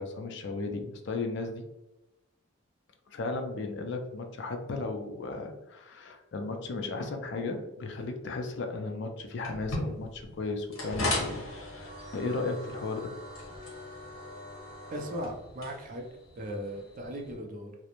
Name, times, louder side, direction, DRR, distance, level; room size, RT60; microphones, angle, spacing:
voice 1, 0.0-1.6 3.1-11.4 11.7-13.1, left 3 dB, 55° left, 4 dB, 0.3 m, -35 dB
sound 1, 9.4-17.3, left 1 dB, 70° left, 0.8 m, -38 dB
voice 2, 14.9-16.1 16.4-17.8, equal, 40° right, 2 dB, 0.4 m, -37 dB
2.5 x 2.0 x 2.9 m, 0.97 s
head